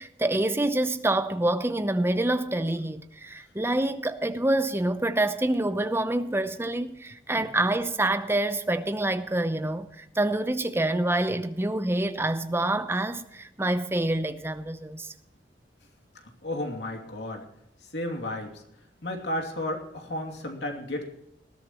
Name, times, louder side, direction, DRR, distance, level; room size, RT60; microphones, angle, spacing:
voice 1, 0.0-15.1, right 1 dB, 15° right, 0.8 m, -27 dB
voice 2, 16.4-17.4 17.9-18.6 19.0-21.0, left 1 dB, 75° left, 2.7 m, -33 dB
20.0 x 14.0 x 3.0 m
head